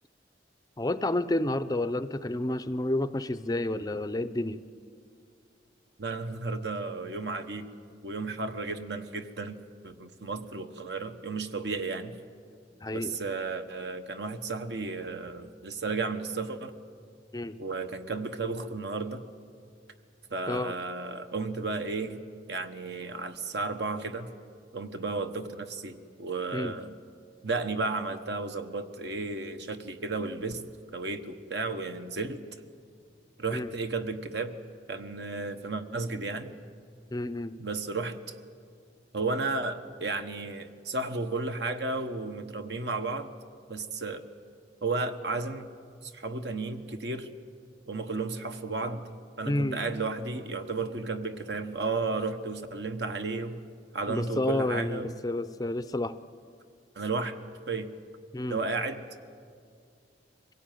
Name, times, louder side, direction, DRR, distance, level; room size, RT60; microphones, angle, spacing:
voice 1, 0.8-4.6 12.8-13.1 17.3-17.6 20.5-20.7 26.5-26.7 33.5-33.7 37.1-37.5 49.5-49.8 54.1-56.2 58.3-58.6, left 1 dB, 20° left, 13 dB, 0.5 m, -30 dB
voice 2, 6.0-7.7 8.0-9.6 9.8-12.2 12.9-16.8 17.6-19.2 20.3-22.2 22.5-24.3 24.7-26.9 27.4-30.6 30.9-32.4 33.4-34.6 34.9-36.5 37.6-38.4 39.1-43.3 43.7-44.3 44.8-45.7 46.0-47.3 47.9-49.1 49.4-53.6 53.9-55.2 56.9-57.9 58.5-59.0, right 3 dB, 65° right, 8 dB, 1.2 m, -33 dB
23.5 x 17.0 x 9.2 m, 2.3 s
head